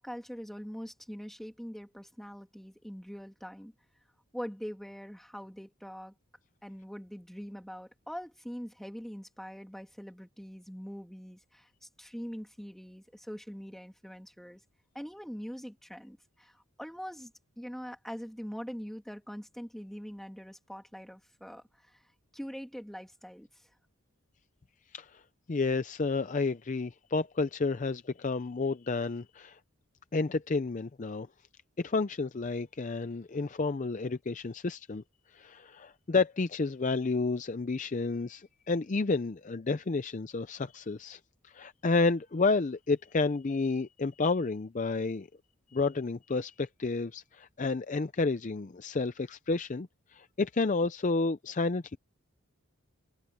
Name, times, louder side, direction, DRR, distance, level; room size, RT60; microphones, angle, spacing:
voice 1, 0.0-3.7 4.3-6.1 6.6-14.6 14.9-22.0 22.3-23.7, equal, ahead, 2.5 m, -43 dB
voice 2, 25.5-29.6 30.1-31.3 31.8-35.0 35.3-41.2 41.5-45.3 45.7-49.9 50.1-52.0, left 3 dB, 35° left, 0.5 m, -30 dB
open air
head